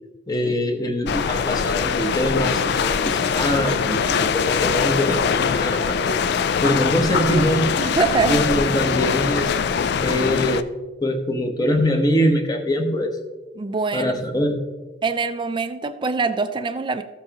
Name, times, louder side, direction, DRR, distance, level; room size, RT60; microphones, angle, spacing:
voice 1, 0.3-6.2 6.6-7.7 8.3-9.5 10.0-10.7 11.0-13.1 13.9-14.6, equal, 20° left, 4 dB, 0.9 m, -23 dB
sound 1, 1.1-10.6, left 6 dB, 60° left, 0.4 m, -22 dB
voice 2, 7.8-8.4 13.6-14.1 15.0-17.0, right 4 dB, 25° right, 8 dB, 0.4 m, -23 dB
14.0 x 7.3 x 2.9 m, 1.3 s
head